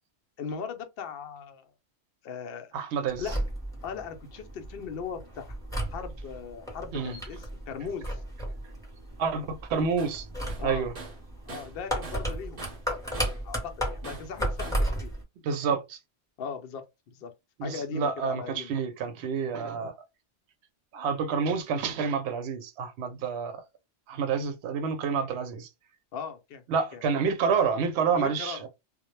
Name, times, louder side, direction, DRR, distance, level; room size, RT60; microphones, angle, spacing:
voice 1, 0.4-1.7 2.2-2.7 3.2-3.4 3.8-8.2 10.6-10.9 11.5-15.1 16.4-17.3 17.6-18.7 23.2-23.3 26.1-26.6 26.9-27.0 28.1-28.7, left 6 dB, 65° left, 0.7 m, -39 dB
voice 2, 2.7-3.2 6.9-7.2 9.2-10.3 10.6-10.9 15.4-16.0 17.6-19.9 20.9-23.6 24.1-25.7 26.7-28.7, right 6 dB, 75° right, 0.8 m, -28 dB
sound 1, 3.1-15.2, right 1 dB, 5° left, 0.7 m, -34 dB
Tools, 10.0-10.2 10.5-12.3 12.6-13.5 14.0-14.9, right 3 dB, 40° right, 0.7 m, -43 dB
2.2 x 2.0 x 3.0 m
omnidirectional pair, 1.2 m